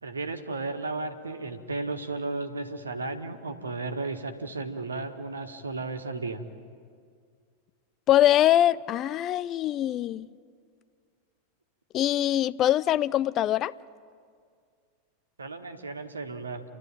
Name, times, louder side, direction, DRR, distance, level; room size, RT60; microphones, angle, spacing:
voice 1, 0.0-6.4 15.4-16.6, right 3 dB, 75° right, 1.8 m, -34 dB
voice 2, 8.1-10.3 11.9-13.7, left 12 dB, 35° left, 0.5 m, -23 dB
29.5 x 12.5 x 9.1 m
figure-of-eight pair, 90°, 0 cm